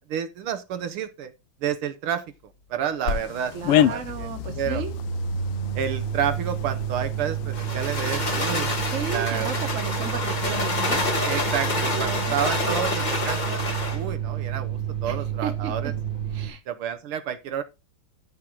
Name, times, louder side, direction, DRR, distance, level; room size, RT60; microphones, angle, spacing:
voice 1, 0.1-1.3 1.6-2.2 2.7-4.3 4.6-4.8 5.8-8.7 9.1-9.5 11.2-13.6 13.9-15.9 16.7-17.6, right 9 dB, 75° right, 1.7 m, -30 dB
sound 1, 3.1-12.1, left 11 dB, 85° left, 1.6 m, -31 dB
sound 2, 3.1-3.2 3.4-16.5, right 7 dB, 65° left, 3.3 m, -30 dB
voice 2, 3.5-5.0 8.9-11.2 11.6-12.8 15.0-16.0 16.3-16.6, right 7 dB, 40° right, 1.5 m, -34 dB
sound 3, 7.5-14.0, left 3 dB, 25° left, 1.1 m, -28 dB
13.0 x 4.6 x 3.7 m
omnidirectional pair, 2.4 m